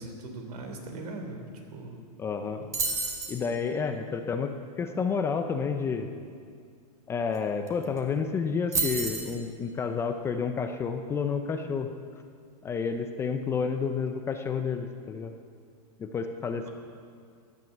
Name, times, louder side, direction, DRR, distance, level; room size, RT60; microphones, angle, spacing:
voice 1, 0.0-1.4 1.7-2.0 2.6-2.7 16.6-16.7, right 2 dB, 75° right, 4 dB, 3.3 m, -40 dB
voice 2, 2.2-2.6 3.3-6.1 7.1-11.9 12.6-15.3 16.0-16.7, left 5 dB, 10° left, 6 dB, 0.6 m, -30 dB
sound 1, 2.7-3.4 7.3-7.4 7.7-8.0 8.7-9.3, right 3 dB, 15° right, 1.7 m, -29 dB
15.0 x 10.5 x 7.3 m, 2.2 s
supercardioid pair, 155°, 20 cm